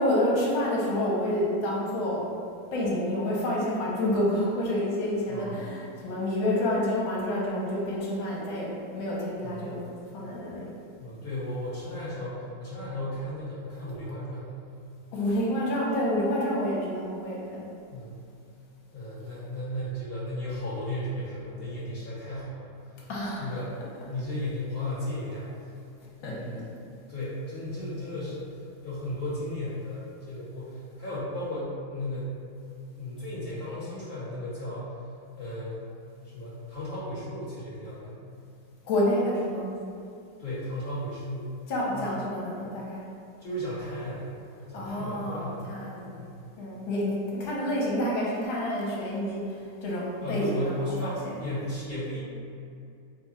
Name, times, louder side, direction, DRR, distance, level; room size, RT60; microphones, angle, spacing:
voice 1, 0.0-2.3 2.7-9.8 10.1-10.7 15.1-17.6 23.1-23.4 26.2-26.4 38.8-39.7 41.7-43.0 44.7-46.1 46.6-50.8 51.0-51.4, left 1 dB, 70° left, -4 dB, 1.5 m, -28 dB
voice 2, 5.3-5.7 9.4-9.8 11.0-14.5 17.9-18.1 18.9-22.7 23.4-23.7 24.1-25.5 26.2-26.7 27.1-28.6 28.8-32.3 32.9-35.0 35.3-35.9 36.3-38.3 40.4-41.5 42.0-42.1 43.4-44.3 44.7-45.6 46.2-46.4 50.2-52.2, left 1 dB, 35° left, -10 dB, 1.0 m, -35 dB
4.6 x 2.3 x 4.2 m, 2.5 s
omnidirectional pair, 2.4 m